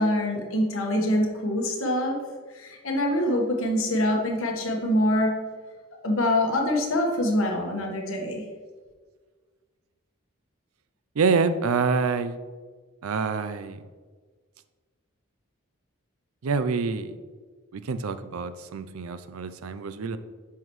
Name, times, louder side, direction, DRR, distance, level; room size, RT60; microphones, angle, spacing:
voice 1, 0.0-2.2 2.5-5.3 6.0-8.4, left 1 dB, 70° left, 0 dB, 1.4 m, -25 dB
voice 2, 11.2-12.4 13.0-13.8 16.4-17.1 17.7-20.2, right 5 dB, 80° right, 12 dB, 0.5 m, -26 dB
10.0 x 5.7 x 3.1 m, 1.5 s
head